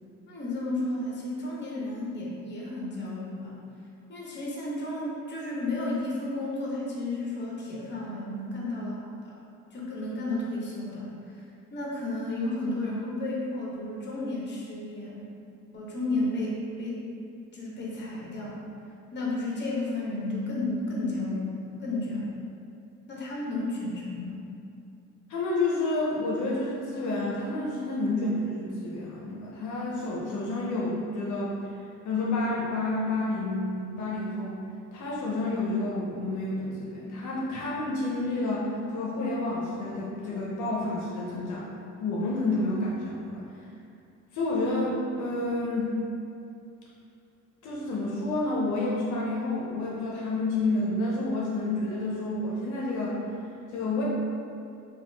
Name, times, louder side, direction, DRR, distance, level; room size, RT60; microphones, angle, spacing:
voice 1, 0.3-3.6 4.1-9.1 9.7-11.5 11.7-15.2 15.7-17.0 17.5-18.6 19.1-22.3 23.1-24.4, left 2 dB, 35° left, -4 dB, 0.8 m, -32 dB
voice 2, 25.3-31.5 32.0-34.6 34.9-38.7 38.9-41.6 42.0-43.4 44.3-45.9 47.6-53.2 53.7-54.0, left 2 dB, 75° left, -5 dB, 0.6 m, -29 dB
2.8 x 2.3 x 3.2 m, 2.5 s
cardioid pair, 90°, 30 cm